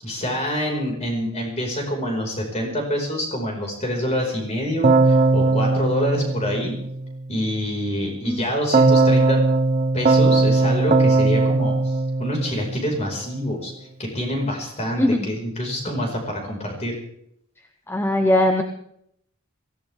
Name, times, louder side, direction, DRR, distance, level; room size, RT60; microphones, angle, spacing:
voice 1, 0.0-6.7 7.3-9.4 9.9-11.8 12.2-13.7 14.0-17.0, equal, 30° left, 1 dB, 4.9 m, -26 dB
Keyboard (musical), 4.8-7.2 8.7-13.0, right 3 dB, 35° right, 0.8 m, -19 dB
voice 2, 15.0-15.3 17.9-18.6, left 1 dB, 10° left, 5 dB, 0.9 m, -20 dB
22.5 x 16.0 x 3.5 m, 0.72 s
head